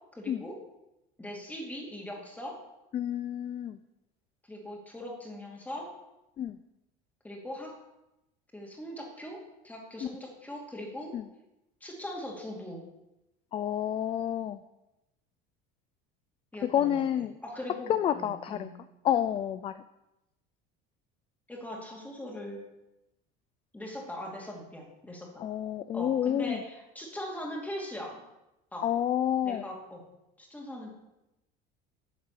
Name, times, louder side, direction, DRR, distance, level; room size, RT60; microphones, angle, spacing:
voice 1, 0.1-0.6 1.2-2.6 4.5-5.9 7.2-7.7 8.5-9.4 9.6-11.1 11.8-12.8 16.5-18.7 21.5-22.6 23.7-25.5 25.9-28.2 28.7-28.9 29.4-30.0 30.4-30.9, left 1 dB, 5° left, 0 dB, 2.5 m, -40 dB
voice 2, 2.9-3.8 6.4-6.6 10.0-10.1 11.1-11.2 13.5-14.6 16.6-17.3 17.9-18.7 19.0-19.8 25.4-26.6 28.8-29.7, left 10 dB, 25° left, 13 dB, 0.3 m, -29 dB
11.0 x 6.3 x 6.8 m, 0.93 s
cardioid pair, 140°, 21 cm